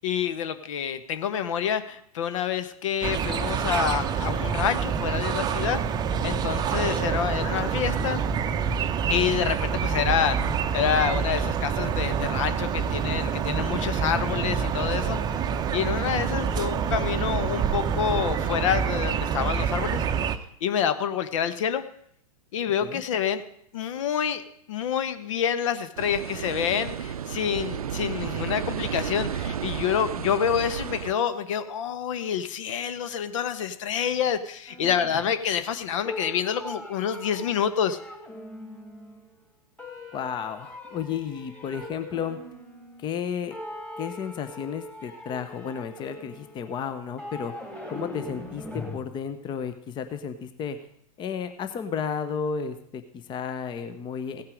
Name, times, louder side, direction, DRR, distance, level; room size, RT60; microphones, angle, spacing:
voice 1, 0.0-5.8 6.1-8.2 9.1-10.4 10.7-15.2 15.7-20.0 20.6-21.8 22.5-23.4 23.7-24.4 24.7-38.0, left 8 dB, 55° left, 11 dB, 1.1 m, -27 dB
sound 1, 3.0-20.4, right 7 dB, 20° right, 0.8 m, -27 dB
sound 2, 26.0-31.1, right 8 dB, 70° right, 0.6 m, -32 dB
sound 3, 34.7-35.8 36.0-39.3 39.8-43.2 43.5-49.0, left 1 dB, 5° left, 2.7 m, -41 dB
voice 2, 40.1-42.4 43.0-43.5 44.0-47.5 47.9-50.8 51.2-54.4, left 7 dB, 25° left, 10 dB, 1.0 m, -33 dB
16.5 x 8.7 x 5.2 m, 0.69 s
figure-of-eight pair, 100°, 20 cm